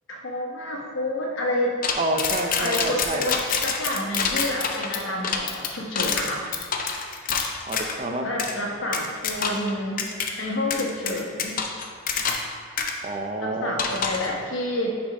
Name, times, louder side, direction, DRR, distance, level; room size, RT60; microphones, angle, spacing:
voice 1, 0.1-1.8 2.6-6.4 8.2-10.1 10.4-11.6 13.4-15.0, left 1 dB, 55° left, -1 dB, 1.0 m, -29 dB
sound 1, 1.8-8.0 8.4-8.5 8.9-9.7 10.0-10.3 10.7-12.5 12.8-12.9 13.8-14.3, left 6 dB, 40° left, 0.5 m, -27 dB
voice 2, 1.9-3.3 7.7-8.2 13.0-13.7, right 2 dB, 30° right, 3 dB, 0.4 m, -28 dB
6.1 x 4.0 x 4.9 m, 2.2 s
head